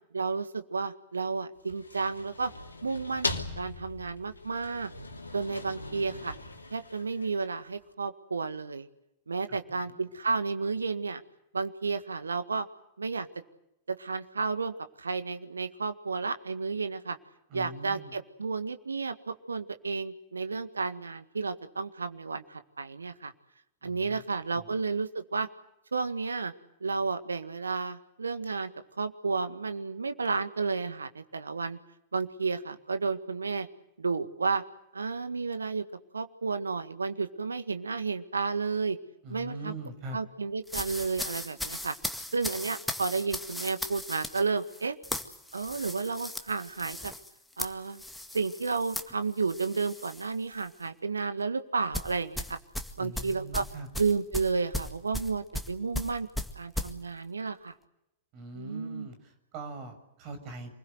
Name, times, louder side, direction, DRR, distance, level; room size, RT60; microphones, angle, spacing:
voice 1, 0.1-2.5 2.8-3.3 3.6-4.9 5.3-6.3 6.7-8.9 9.3-11.2 11.5-12.7 13.0-13.3 13.9-17.2 17.5-23.3 23.8-25.5 25.9-26.5 26.8-28.7 29.0-31.8 32.1-33.7 34.0-34.6 34.9-35.8 36.1-39.0 39.3-39.7 40.1-41.9 42.3-45.0 45.5-47.1 47.6-48.0 48.3-52.6 53.0-53.6 54.0-56.3 56.6-57.7 58.6-59.1, right 4 dB, 75° right, 10 dB, 1.8 m, -32 dB
sound 1, 1.6-7.6, left 2 dB, 80° left, 2.6 m, -39 dB
voice 2, 5.5-6.2 9.5-10.0 17.5-18.2 23.8-24.2 24.5-24.8 39.2-40.2 53.0-53.9 58.3-60.7, right 2 dB, 40° right, 8 dB, 6.9 m, -43 dB
sound 2, 40.7-50.3 50.6-50.9 51.9-56.9, left 1 dB, 5° left, 2.0 m, -37 dB
28.0 x 21.0 x 8.0 m, 0.83 s
figure-of-eight pair, 95°, 0 cm